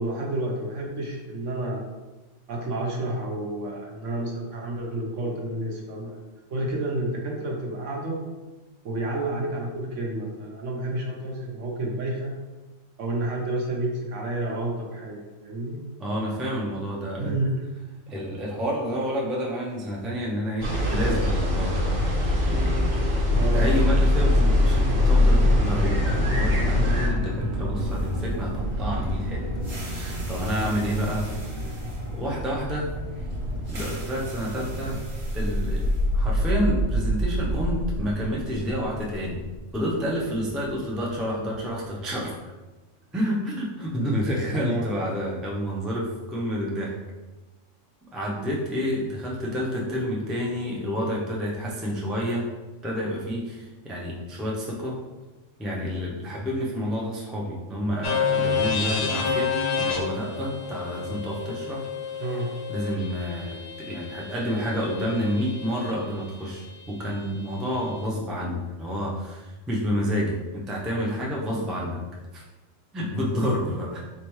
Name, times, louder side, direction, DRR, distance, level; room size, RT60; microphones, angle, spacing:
voice 1, 0.0-1.9 2.5-6.1 6.5-8.2 8.8-12.3 13.0-15.8 17.2-17.6 23.3-23.7 25.3-25.5 44.5-44.9 62.2-62.5, right 2 dB, 70° right, -1 dB, 1.2 m, -30 dB
voice 2, 16.0-17.3 18.1-21.8 22.5-22.9 23.3-29.4 29.8-31.3 31.6-31.7 32.1-32.9 33.7-35.0 35.3-35.8 36.1-39.4 39.7-42.4 43.1-47.0 48.1-52.4 52.8-54.9 55.6-61.8 62.7-72.0 72.3-72.4 72.9-74.0, equal, ahead, -4 dB, 0.3 m, -29 dB
sound 1, 20.6-27.1, left 1 dB, 90° right, 1.3 m, -24 dB
sound 2, 23.1-41.2, equal, 45° right, 1.0 m, -27 dB
sound 3, 58.0-65.9, left 6 dB, 60° left, 0.9 m, -29 dB
4.3 x 3.4 x 3.1 m, 1.2 s
omnidirectional pair, 1.3 m